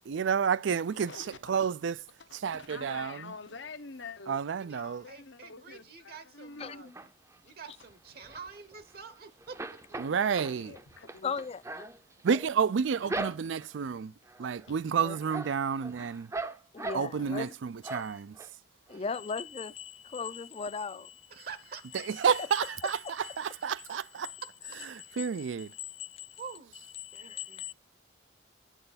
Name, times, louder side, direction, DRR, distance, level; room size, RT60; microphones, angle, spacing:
voice 1, 0.1-2.0 2.3-3.3 4.3-5.1 10.0-10.7 12.2-14.1 14.4-16.3 16.9-18.4 21.9-24.3 24.9-25.7, right 6 dB, 80° right, 0.4 m, -30 dB
voice 2, 0.9-1.4 2.5-4.4 4.7-7.0 10.0-11.3 14.7-14.8 17.2-17.3, left 4 dB, 80° left, 1.0 m, -46 dB
voice 3, 4.5-6.9 7.4-10.0 18.9-19.2 21.3-22.0 26.4-26.7 27.1-27.6, right 5 dB, 55° right, 0.9 m, -47 dB
sound 1, 6.6-7.4 7.8-9.1 9.4-13.8 14.3-14.7 15.0-17.5 17.8-18.5 18.9-19.0 19.3-19.4, right 2 dB, 15° right, 0.5 m, -40 dB
voice 4, 11.2-11.6 15.0-15.2 16.7-17.5 17.8-18.2 18.9-21.4 22.1-23.4 25.6-26.3 27.0-27.7, left 5 dB, 35° left, 0.4 m, -38 dB
9.1 x 7.7 x 4.1 m
head